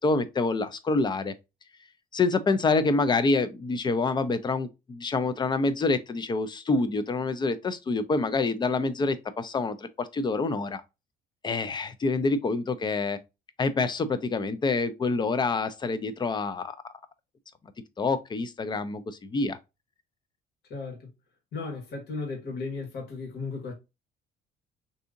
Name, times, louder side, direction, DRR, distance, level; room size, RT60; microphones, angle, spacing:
voice 1, 0.0-1.3 2.1-10.8 11.4-13.2 13.6-16.7 18.0-19.6, left 3 dB, 25° left, 0.5 m, -27 dB
voice 2, 20.7-21.1 21.5-23.7, left 4 dB, 70° left, 1.5 m, -35 dB
3.6 x 2.7 x 2.5 m
cardioid pair, 110°, 17 cm